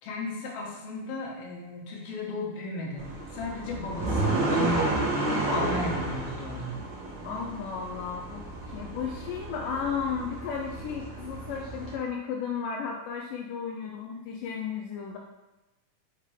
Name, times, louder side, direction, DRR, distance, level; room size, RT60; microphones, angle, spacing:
voice 1, 0.0-4.8 5.5-6.8, left 2 dB, 60° left, -3 dB, 1.8 m, -35 dB
sound 1, 3.0-11.9, right 2 dB, 75° right, 1.0 m, -31 dB
voice 2, 7.2-15.2, left 6 dB, 80° left, 0 dB, 2.1 m, -34 dB
5.7 x 3.3 x 4.9 m, 1.0 s
omnidirectional pair, 4.1 m